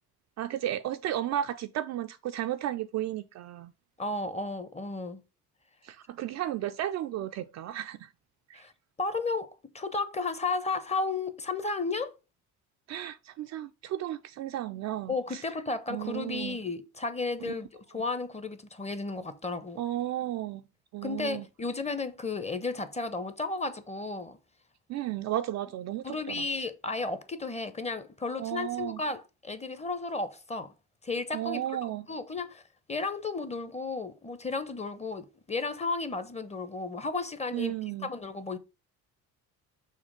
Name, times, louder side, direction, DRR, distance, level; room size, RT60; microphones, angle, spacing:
voice 1, 0.4-3.7 5.8-8.1 8.5-8.6 12.9-15.4 15.9-16.6 17.4-17.5 19.8-20.6 20.9-21.4 24.9-26.4 28.4-29.0 31.3-32.0 37.5-38.1, right 12 dB, 40° right, 0.4 m, -33 dB
voice 2, 4.0-5.2 8.5-8.7 9.0-12.1 15.1-19.8 21.0-24.4 26.0-30.7 31.0-32.6 32.9-37.7 38.0-38.6, left 3 dB, 15° left, 0.7 m, -33 dB
6.5 x 2.9 x 5.1 m
hypercardioid pair, 55°, 45 cm